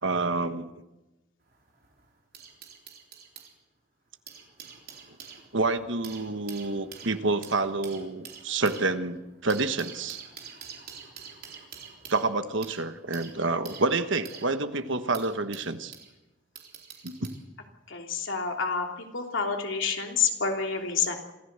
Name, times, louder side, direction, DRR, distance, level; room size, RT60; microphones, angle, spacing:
voice 1, 0.0-0.7 5.5-10.2 12.1-15.9 17.0-17.3, right 3 dB, 65° right, 9 dB, 1.3 m, -28 dB
sound 1, 1.4-3.5 4.1-16.1 16.6-17.4 18.3-18.5, right 7 dB, 50° right, 3.9 m, -47 dB
voice 2, 17.9-18.9 19.1-21.2, left 5 dB, 65° left, 2 dB, 3.3 m, -28 dB
26.5 x 15.0 x 8.1 m, 1.0 s
head